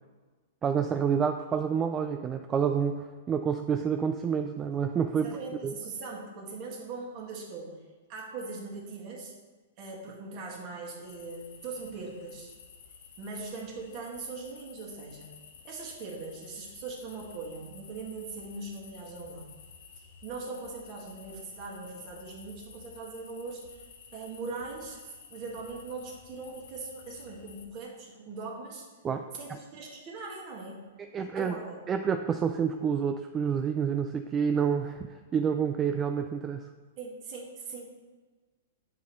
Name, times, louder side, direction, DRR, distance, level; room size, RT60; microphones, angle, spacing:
voice 1, 0.6-5.4 5.6-5.7 29.0-29.2 29.5-29.6 31.1-31.6 31.9-36.7, right 7 dB, 25° right, 7 dB, 0.3 m, -28 dB
voice 2, 5.1-7.8 8.1-9.3 9.8-12.5 13.2-15.3 15.6-19.5 20.0-28.9 29.3-30.8 31.3-31.8 37.0-38.0, right 3 dB, 45° right, -3 dB, 1.8 m, -41 dB
sound 1, 11.0-27.7, left 6 dB, 65° left, 0.8 m, -52 dB
8.4 x 4.7 x 3.1 m, 1.4 s
hypercardioid pair, 115°, 0 cm